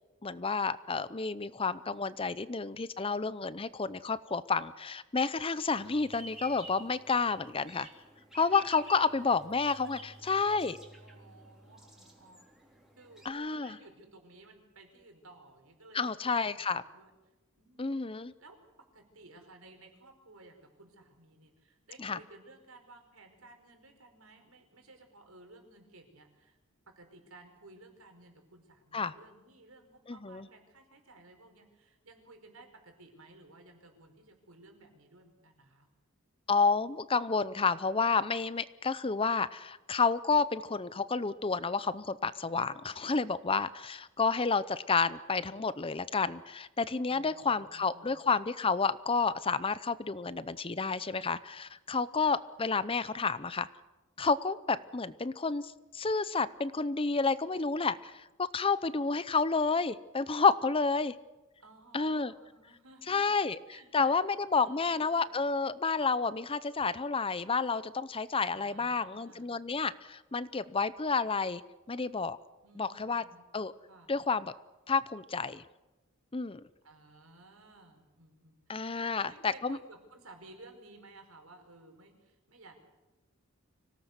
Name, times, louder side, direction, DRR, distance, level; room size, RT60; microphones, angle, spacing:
voice 1, 0.2-7.9 8.3-10.8 13.2-13.8 15.9-16.8 17.8-18.3 22.0-22.2 28.9-29.1 30.1-30.5 36.5-53.7 54.2-61.1 61.9-62.3 63.1-71.6 71.9-72.4 72.8-73.2 73.5-73.7 74.1-74.5 74.9-75.6 76.3-76.6 78.7-79.8, left 4 dB, 25° left, 16 dB, 0.7 m, -30 dB
sound 1, 5.7-13.3, equal, ahead, 3.6 m, -51 dB
voice 2, 8.8-9.4 10.1-10.5 11.0-12.5 12.9-16.5 16.8-17.1 17.6-18.6 18.9-26.6 26.9-35.9 47.1-48.2 61.6-63.4 63.7-64.2 64.5-65.2 68.5-69.5 72.6-73.5 73.9-74.1 76.8-82.8, right 2 dB, 80° right, 5 dB, 5.0 m, -56 dB
25.5 x 17.5 x 8.2 m, 1.1 s
head